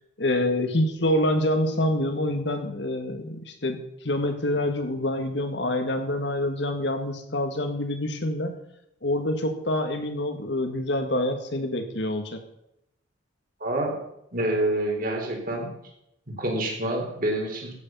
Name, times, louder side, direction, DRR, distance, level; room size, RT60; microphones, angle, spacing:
voice 1, 0.2-3.8 4.0-8.5 9.0-12.4, left 1 dB, 60° left, 6 dB, 1.9 m, -26 dB
voice 2, 13.6-14.0 14.3-15.7 16.3-17.7, right 1 dB, 45° right, 1 dB, 3.8 m, -27 dB
14.5 x 8.5 x 5.6 m, 0.80 s
head